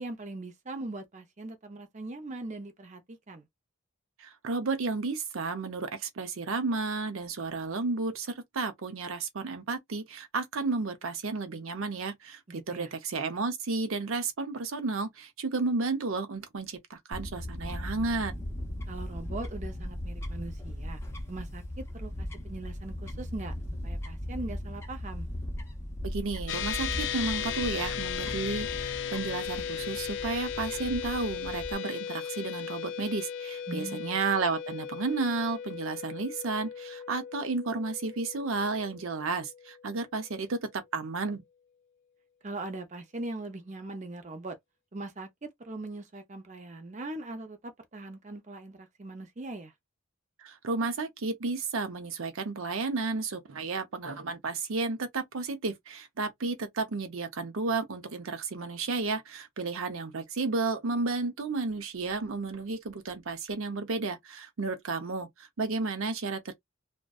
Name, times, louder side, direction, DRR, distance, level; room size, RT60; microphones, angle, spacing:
voice 1, 0.0-3.5 12.5-12.9 18.9-21.0 21.3-23.5 23.8-25.3 33.7-34.2 42.4-44.6 44.9-49.7, right 2 dB, 35° right, 0.6 m, -40 dB
voice 2, 4.2-12.4 12.7-18.4 26.0-41.4 50.4-66.5, right 3 dB, 75° right, 0.6 m, -32 dB
Fowl / Bird, 17.1-31.7, left 1 dB, 10° left, 0.6 m, -38 dB
sound 1, 26.5-40.1, left 8 dB, 55° left, 0.3 m, -36 dB
2.6 x 2.1 x 2.3 m
head